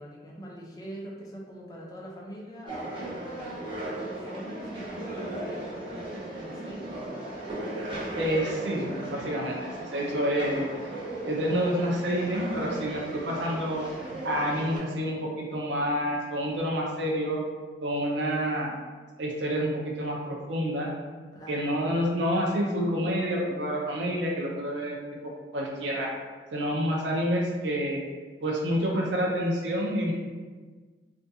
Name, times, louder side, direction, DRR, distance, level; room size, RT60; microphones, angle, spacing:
voice 1, 0.0-3.6 4.1-7.1 21.3-21.7, equal, 20° left, -4 dB, 0.4 m, -43 dB
sound 1, 2.7-14.8, right 1 dB, 30° right, 0.6 m, -37 dB
voice 2, 8.1-10.7 11.2-13.9 14.2-17.4 17.8-18.7 19.2-20.9 21.5-25.0 25.2-26.1 26.5-28.0 28.4-30.1, equal, 75° right, -2 dB, 0.5 m, -28 dB
2.4 x 2.3 x 2.6 m, 1.4 s
head